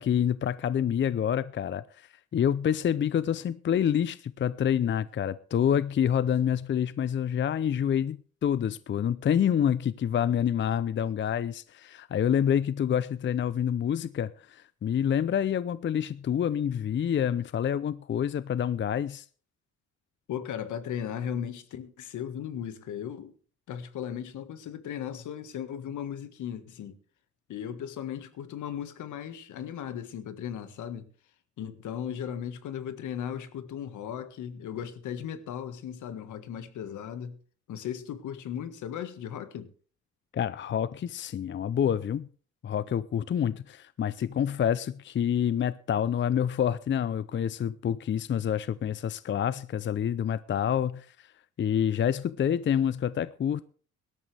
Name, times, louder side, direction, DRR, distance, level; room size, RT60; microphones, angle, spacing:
voice 1, 0.0-19.3 40.3-42.3 42.6-51.3 51.6-53.6, left 9 dB, 40° left, 0.5 m, -27 dB
voice 2, 20.3-23.3 23.7-27.0 27.5-31.1 31.6-37.4 37.7-39.7, left 9 dB, 75° left, 1.6 m, -36 dB
18.0 x 12.5 x 3.4 m
cardioid pair, 90°, 30 cm